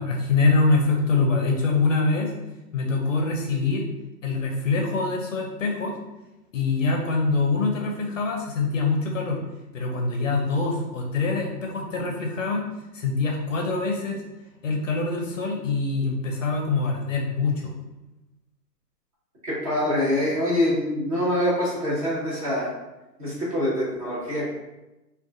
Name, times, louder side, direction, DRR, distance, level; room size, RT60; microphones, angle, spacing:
voice 1, 0.0-2.3 2.7-3.9 4.2-5.9 6.5-9.4 9.7-12.7 12.9-14.2 14.6-17.7, left 3 dB, 50° left, 1 dB, 0.6 m, -24 dB
voice 2, 19.4-22.7 23.2-24.5, left 1 dB, 20° right, -8 dB, 0.8 m, -25 dB
3.5 x 2.4 x 2.5 m, 1.0 s
hypercardioid pair, 145°, 50 cm